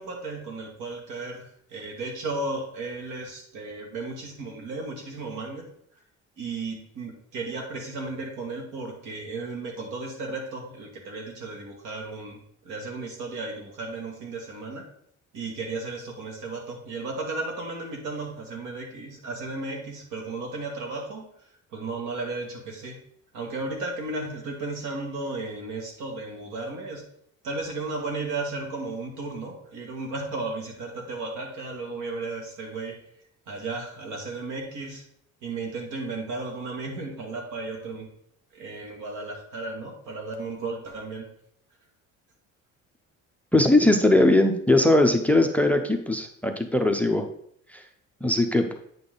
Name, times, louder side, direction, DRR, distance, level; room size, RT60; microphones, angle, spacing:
voice 1, 0.0-5.6 6.4-14.8 15.3-21.3 21.7-23.0 23.3-27.0 27.4-33.0 33.5-35.0 35.4-38.1 38.5-41.3, right 3 dB, 85° right, 1 dB, 2.2 m, -34 dB
voice 2, 43.5-47.3 47.7-47.8 48.2-48.7, left 1 dB, 5° left, 6 dB, 0.5 m, -20 dB
8.7 x 5.7 x 3.8 m, 0.68 s
cardioid pair, 150°, 30 cm